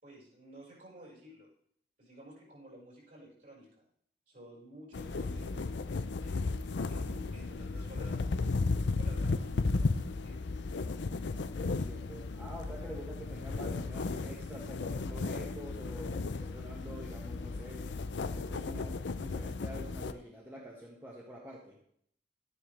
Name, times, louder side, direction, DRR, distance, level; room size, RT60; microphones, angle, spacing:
voice 1, 0.0-1.5 2.0-3.8 4.3-5.7 6.2-10.5, equal, 50° right, -5 dB, 5.2 m, -53 dB
sound 1, 4.9-20.1, left 3 dB, 80° left, 0.5 m, -35 dB
voice 2, 11.6-17.9 18.2-21.8, equal, 10° right, -4 dB, 1.6 m, -47 dB
12.5 x 9.8 x 3.3 m, 0.66 s
head